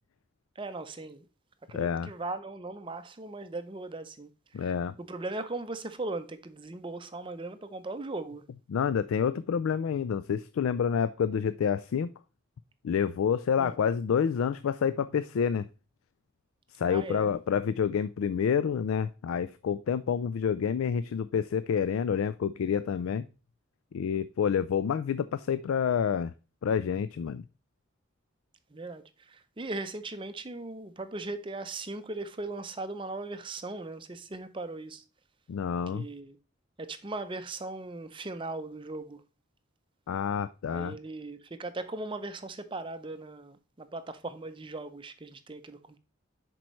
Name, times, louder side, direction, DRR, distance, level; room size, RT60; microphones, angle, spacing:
voice 1, 0.6-1.3 1.7-8.4 13.6-13.8 16.9-17.3 28.7-35.0 35.9-36.4 36.8-39.2 40.6-46.0, right 2 dB, 25° right, 0.5 m, -38 dB
voice 2, 1.7-2.1 4.5-4.9 8.7-12.1 12.8-15.7 16.8-23.2 23.9-26.3 26.6-27.4 35.5-36.1 40.1-40.9, left 7 dB, 80° left, 0.3 m, -28 dB
10.5 x 4.5 x 3.1 m
head